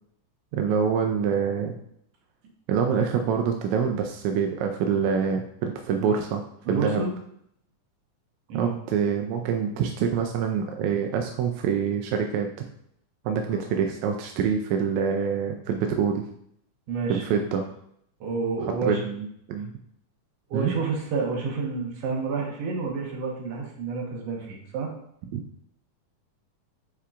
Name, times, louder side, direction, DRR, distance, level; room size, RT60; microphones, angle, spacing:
voice 1, 0.5-1.8 2.7-6.4 6.7-7.0 8.5-12.5 13.2-16.2 17.1-17.7 18.9-19.7 20.5-20.7, right 7 dB, 80° right, 3 dB, 1.6 m, -25 dB
voice 2, 6.7-7.1 8.5-8.7 13.5-13.6 16.9-17.2 18.2-19.0 20.5-24.9, right 4 dB, 60° right, -1 dB, 2.0 m, -29 dB
8.5 x 4.6 x 2.5 m, 0.71 s
omnidirectional pair, 3.7 m